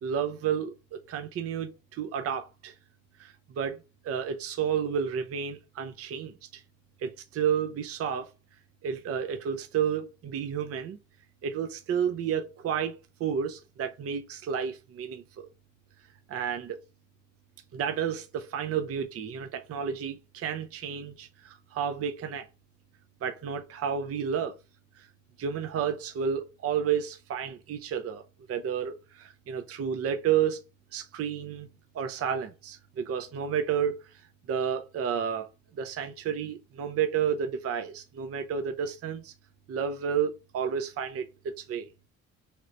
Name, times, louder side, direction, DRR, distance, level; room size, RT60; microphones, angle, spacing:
voice 1, 0.0-2.7 3.2-3.8 4.0-6.6 7.0-8.3 8.8-11.0 11.4-15.5 16.3-16.8 17.7-22.5 23.2-24.6 25.0-25.1 25.4-28.2 28.5-30.6 30.9-31.7 31.9-34.1 34.5-35.5 35.8-39.3 39.7-41.9, right 8 dB, 50° right, 0.5 m, -31 dB
3.2 x 2.9 x 2.5 m
cardioid pair, 90°, 30 cm